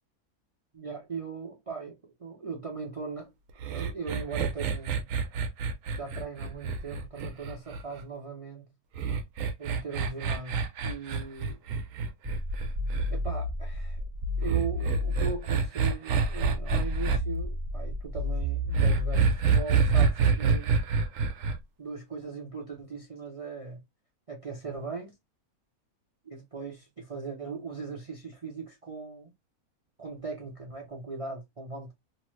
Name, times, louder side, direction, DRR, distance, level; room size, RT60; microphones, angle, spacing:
voice 1, 0.7-3.3 3.7-5.1 6.0-8.7 9.6-11.6 13.1-14.0 14.4-20.8 21.8-23.8 24.3-25.1 26.2-29.3 30.0-31.9, right 4 dB, 45° right, 0.4 m, -39 dB
sound 1, 3.6-8.0 9.0-13.1 14.4-17.2 18.7-21.6, right 5 dB, 70° right, 0.9 m, -27 dB
sound 2, 12.2-15.5 16.2-19.5, left 1 dB, 25° right, 0.9 m, -32 dB
3.1 x 2.0 x 3.0 m
omnidirectional pair, 1.5 m